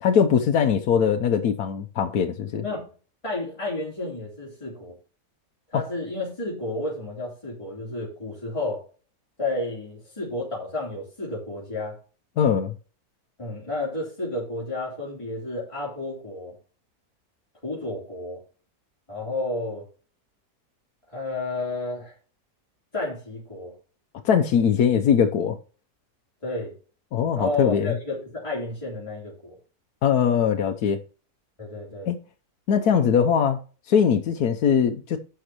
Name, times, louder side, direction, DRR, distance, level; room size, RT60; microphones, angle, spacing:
voice 1, 0.0-2.6 12.4-12.7 24.2-25.6 27.1-27.9 30.0-31.0 32.1-32.2 32.7-33.6 33.9-35.2, left 7 dB, 80° left, 1.3 m, -21 dB
voice 2, 3.2-4.9 5.7-8.8 9.4-12.0 13.4-16.6 17.6-18.4 19.1-19.8 21.1-22.1 22.9-23.7 26.4-26.7 27.4-29.6 31.6-32.1, left 2 dB, 20° left, 3.5 m, -31 dB
11.5 x 7.0 x 3.0 m
omnidirectional pair, 1.6 m